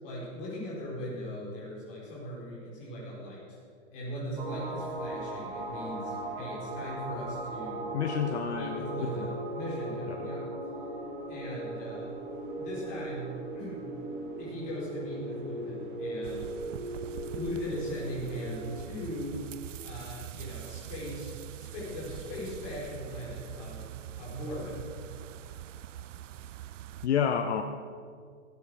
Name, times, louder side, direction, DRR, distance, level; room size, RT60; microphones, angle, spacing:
voice 1, 0.0-3.6 3.9-7.9 8.5-10.4 11.3-12.1 12.6-13.8 14.4-16.4 17.3-19.4 19.8-21.3 21.6-23.9 24.2-24.8, equal, 20° left, -6 dB, 4.9 m, -39 dB
sound 1, 4.4-18.7, right 1 dB, 40° right, 2.3 m, -38 dB
voice 2, 7.9-9.3 10.1-10.3 27.0-27.6, left 8 dB, 55° left, 6 dB, 0.9 m, -30 dB
sound 2, 16.2-27.1, right 12 dB, 70° right, 0.6 m, -43 dB
16.5 x 9.7 x 6.6 m, 2.1 s
hypercardioid pair, 175°, 39 cm